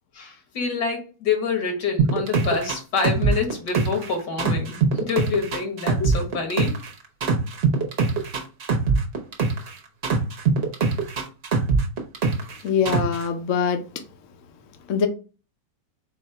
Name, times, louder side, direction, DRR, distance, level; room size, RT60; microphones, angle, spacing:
voice 1, 0.1-6.8, left 5 dB, 80° left, 1.8 m, -27 dB
sound 1, 2.0-4.1 4.4-6.9 7.2-9.7 10.0-12.5 12.9-13.2, right 4 dB, 45° right, 0.9 m, -22 dB
voice 2, 12.6-13.8 14.9-15.1, left 6 dB, 60° left, 0.9 m, -22 dB
4.3 x 2.7 x 4.3 m
omnidirectional pair, 1.8 m